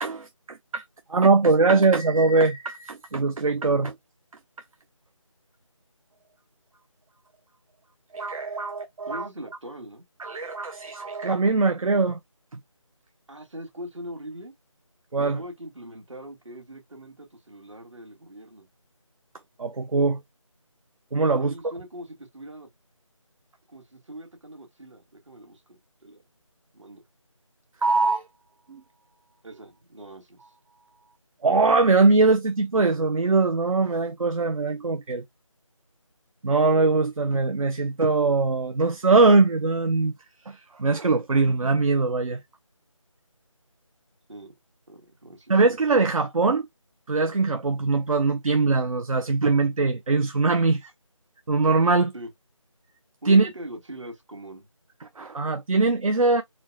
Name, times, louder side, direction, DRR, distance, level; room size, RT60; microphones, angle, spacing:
voice 1, 0.0-0.8 1.1-4.0 8.1-9.3 10.2-12.2 15.1-15.4 19.6-20.2 21.1-21.7 27.8-28.3 28.7-28.8 31.4-35.2 36.4-40.1 40.4-42.4 45.5-46.7 47.1-50.9 51.5-52.1 53.3-53.5 55.2-56.4, right 3 dB, 80° right, 0.6 m, -22 dB
voice 2, 9.1-10.1 13.3-14.5 15.2-18.7 21.4-22.7 23.7-26.2 26.7-27.0 29.4-30.4 44.3-44.5 44.9-45.6 52.1-52.3 53.2-54.7, right 1 dB, 60° right, 1.9 m, -41 dB
4.3 x 2.2 x 2.7 m
figure-of-eight pair, 170°, 17 cm